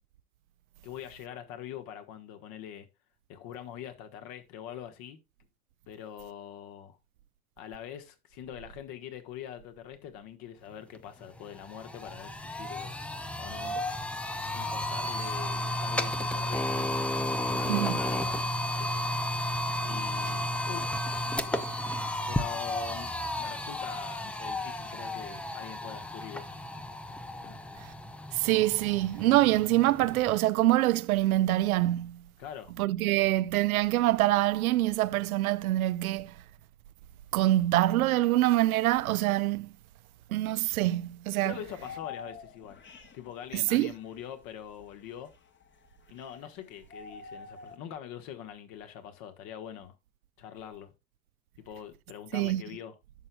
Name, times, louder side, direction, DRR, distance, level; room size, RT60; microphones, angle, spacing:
voice 1, 0.8-2.9 3.3-5.2 5.9-7.0 7.6-12.9 13.4-13.8 14.5-16.9 17.4-19.1 19.8-20.9 21.4-22.0 22.3-26.5 27.4-27.6 32.4-32.7 41.4-42.8 43.1-45.3 46.1-49.9 50.4-50.9 51.6-52.9, left 10 dB, 50° left, 1.4 m, -44 dB
sound 1, 10.9-11.0 11.4-30.4, left 1 dB, 5° left, 0.3 m, -33 dB
voice 2, 17.7-18.0 27.8-27.9 28.3-32.2 32.8-36.3 37.3-39.7 40.3-41.5 43.5-43.9 52.3-52.6, right 16 dB, 70° right, 0.5 m, -25 dB
sound 2, 41.5-46.6 46.9-47.8, left 5 dB, 25° left, 1.2 m, -47 dB
11.0 x 6.6 x 2.3 m
figure-of-eight pair, 80°, 45 cm